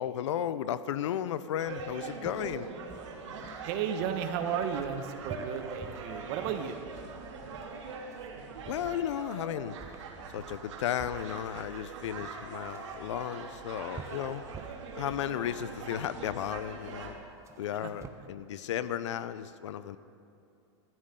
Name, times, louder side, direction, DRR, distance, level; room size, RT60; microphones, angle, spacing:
voice 1, 0.0-2.7 8.7-9.8 10.3-14.4 14.9-17.2 17.6-20.0, left 10 dB, 80° left, 14 dB, 0.7 m, -34 dB
sound 1, 1.6-17.1, right 4 dB, 85° right, 2.8 m, -43 dB
sound 2, 1.8-18.1, right 6 dB, 20° right, 1.1 m, -50 dB
voice 2, 3.6-6.8 17.7-17.9, right 8 dB, 55° right, 6 dB, 1.6 m, -34 dB
22.0 x 14.0 x 3.9 m, 2.6 s
supercardioid pair, 125°, 15 cm